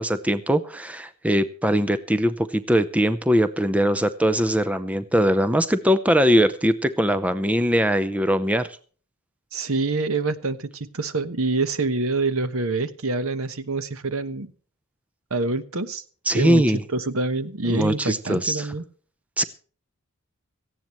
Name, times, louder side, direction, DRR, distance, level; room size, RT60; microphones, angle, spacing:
voice 1, 0.0-8.7 16.3-16.8 17.7-18.7 19.4-19.5, equal, 5° right, 12 dB, 0.6 m, -21 dB
voice 2, 9.5-14.5 15.3-16.0 16.3-18.8, right 3 dB, 70° right, 12 dB, 1.1 m, -26 dB
18.0 x 15.0 x 3.1 m, 0.42 s
head